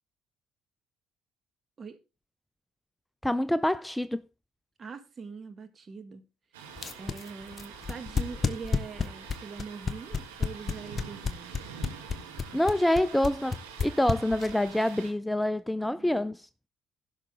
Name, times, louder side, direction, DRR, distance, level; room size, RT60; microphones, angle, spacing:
voice 1, 3.2-4.2 12.5-16.5, left 1 dB, 5° left, 0.5 m, -26 dB
voice 2, 4.8-6.2 6.6-11.5 15.9-16.1, right 5 dB, 40° right, 1.8 m, -43 dB
Thunder, 6.5-15.1, right 7 dB, 85° right, 1.9 m, -46 dB
sound 1, 6.8-14.7, left 5 dB, 35° left, 1.1 m, -29 dB
16.0 x 6.0 x 3.4 m
hypercardioid pair, 55°, 0 cm